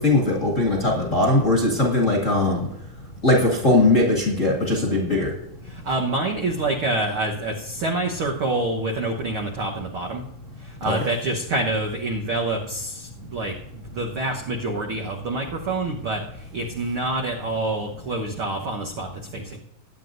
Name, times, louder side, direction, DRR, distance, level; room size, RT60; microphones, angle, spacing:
voice 1, 0.0-2.6 3.2-5.3 10.8-11.1, left 2 dB, 30° left, -1 dB, 1.7 m, -20 dB
voice 2, 5.7-10.2 10.6-19.6, right 2 dB, 65° right, 0 dB, 1.3 m, -27 dB
20.5 x 9.3 x 2.6 m, 0.80 s
omnidirectional pair, 4.0 m